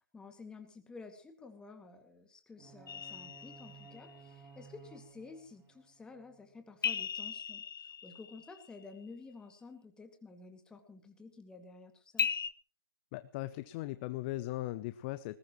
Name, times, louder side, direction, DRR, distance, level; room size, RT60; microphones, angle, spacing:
voice 1, 0.1-7.6 8.0-12.3, left 4 dB, 5° left, 5 dB, 2.3 m, -52 dB
sound 1, 2.6-6.6, right 5 dB, 10° right, 3.2 m, -57 dB
sound 2, 2.9-4.2 6.8-8.8 12.2-12.5, left 7 dB, 60° left, 1.4 m, -37 dB
voice 2, 13.1-15.4, left 17 dB, 25° left, 14 dB, 0.7 m, -38 dB
20.5 x 18.5 x 3.1 m, 0.40 s
figure-of-eight pair, 140°, 13 cm